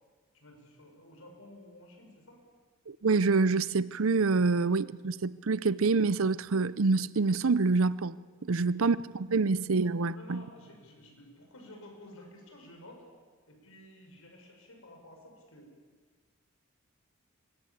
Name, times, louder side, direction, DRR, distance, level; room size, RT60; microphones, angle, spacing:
voice 1, 0.3-2.4 4.5-4.6 8.6-8.7 10.1-13.0 13.5-15.7, left 1 dB, 70° left, 6.3 m, -52 dB
voice 2, 2.9-8.1 8.5-10.4, right 4 dB, 70° right, 0.6 m, -26 dB
23.5 x 21.0 x 8.6 m
head